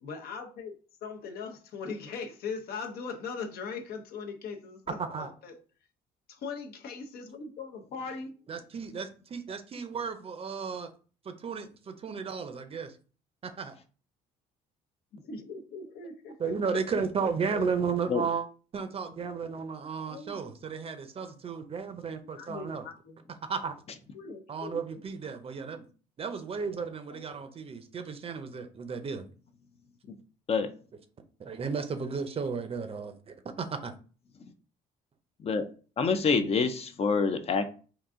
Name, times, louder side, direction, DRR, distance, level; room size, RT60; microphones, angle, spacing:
voice 1, 0.0-5.6 6.3-8.5 15.1-17.7 18.1-18.2 20.1-20.5 22.3-23.3 24.1-25.0 27.1-27.2, left 5 dB, 65° left, 4 dB, 0.8 m, -40 dB
voice 2, 5.0-5.3 8.5-10.9 11.2-13.0 13.4-13.7 16.4-18.5 18.7-22.8 23.5-23.7 24.5-25.9 26.2-29.2 31.4-33.9, right 5 dB, 35° right, 8 dB, 0.6 m, -34 dB
voice 3, 36.0-37.7, left 5 dB, 35° left, 9 dB, 0.5 m, -26 dB
3.9 x 2.5 x 3.6 m, 0.38 s
cardioid pair, 110°, 17 cm